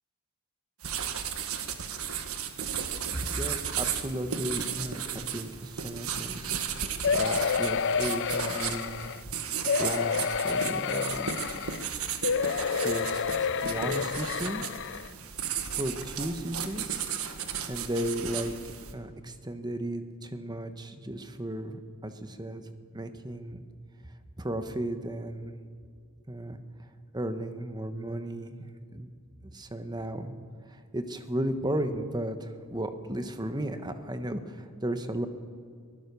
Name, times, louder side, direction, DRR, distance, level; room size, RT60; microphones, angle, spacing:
sound 1, 0.8-18.9, right 8 dB, 75° right, 1.5 m, -35 dB
voice 1, 3.1-6.5 7.1-9.1 9.8-11.7 12.8-14.7 15.8-18.5 18.9-22.6 22.9-23.6 24.4-25.5 26.3-26.9 27.1-28.6 28.9-29.1 29.5-30.3 30.7-35.3, right 1 dB, 20° right, 8 dB, 1.2 m, -35 dB
sound 2, 7.0-9.2 9.7-11.8 12.2-15.1 15.7-15.8 16.0-16.1, left 5 dB, 60° left, 0.6 m, -29 dB
23.0 x 16.5 x 7.0 m, 2.3 s
head